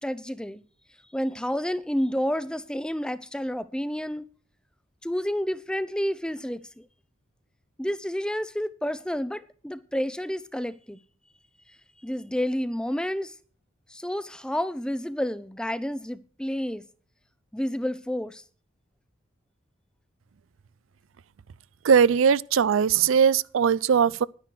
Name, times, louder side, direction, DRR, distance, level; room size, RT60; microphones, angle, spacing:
voice 1, 0.0-0.6 1.1-4.2 5.0-6.8 7.8-11.0 12.0-13.3 13.9-16.8 17.5-18.4, equal, 5° left, 0.6 m, -30 dB
voice 2, 21.8-24.2, right 7 dB, 85° right, 0.4 m, -20 dB
11.0 x 9.9 x 4.6 m
head